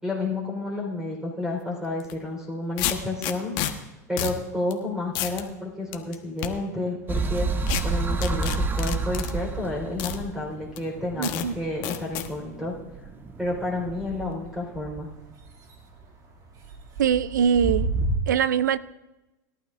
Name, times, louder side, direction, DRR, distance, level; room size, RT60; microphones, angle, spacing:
voice 1, 0.0-3.6 4.1-7.5 7.8-12.7 13.4-15.1, left 2 dB, 5° right, 4.1 m, -30 dB
sound 1, 2.0-2.1 2.8-3.7 4.2-4.4 4.7-4.8 5.1-5.4 5.9-6.5 7.7-7.8 8.2-9.3 10.0-10.2 10.8-10.9 11.2-11.5 11.8-12.3, left 12 dB, 55° left, 1.2 m, -29 dB
sound 2, 4.9-6.1 6.5-18.2, right 2 dB, 40° right, 2.4 m, -37 dB
sound 3, 7.1-14.5, right 3 dB, 20° right, 1.0 m, -30 dB
voice 2, 11.2-11.5 17.0-17.9 18.3-18.8, right 8 dB, 85° right, 0.5 m, -22 dB
20.5 x 12.0 x 2.5 m
hypercardioid pair, 95°, 9 cm